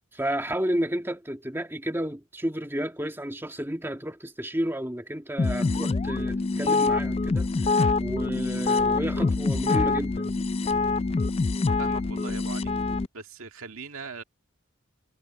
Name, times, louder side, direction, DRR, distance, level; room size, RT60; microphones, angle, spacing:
voice 1, 0.1-7.5 8.0-10.3, equal, 10° right, 1.9 m, -31 dB
sound 1, 5.4-13.1, left 3 dB, 25° left, 0.3 m, -25 dB
voice 2, 11.8-12.8 13.1-14.2, right 4 dB, 70° right, 2.0 m, -40 dB
head